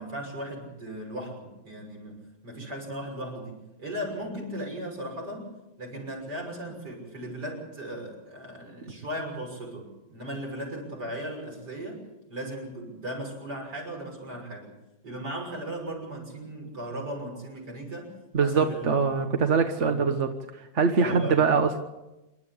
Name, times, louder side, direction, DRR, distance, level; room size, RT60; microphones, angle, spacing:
voice 1, 0.0-5.5 5.8-12.0 12.3-14.7 15.0-18.1 18.4-19.0 19.8-20.1 21.0-21.4, right 1 dB, 70° right, 0 dB, 6.8 m, -37 dB
voice 2, 18.3-20.3 20.6-21.8, right 5 dB, 45° right, 6 dB, 1.4 m, -23 dB
27.5 x 12.5 x 8.6 m, 1.0 s
omnidirectional pair, 1.9 m